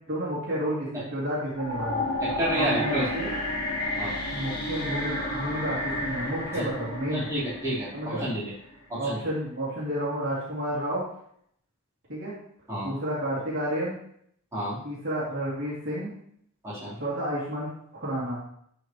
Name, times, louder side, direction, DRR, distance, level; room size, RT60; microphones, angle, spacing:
voice 1, 0.1-2.0 2.5-3.3 4.3-7.3 7.9-8.3 9.0-11.1 12.1-12.3 12.8-14.0 14.8-16.1 17.0-18.4, right 1 dB, 55° right, -9 dB, 2.6 m, -31 dB
sound 1, 1.5-8.6, left 1 dB, 45° left, 2.0 m, -31 dB
voice 2, 2.2-3.1 4.0-4.1 6.6-6.7 7.1-8.5 8.9-9.2 12.7-12.9 14.5-14.8 16.6-17.0, equal, 15° right, -10 dB, 3.7 m, -30 dB
11.5 x 5.1 x 3.1 m, 0.68 s
head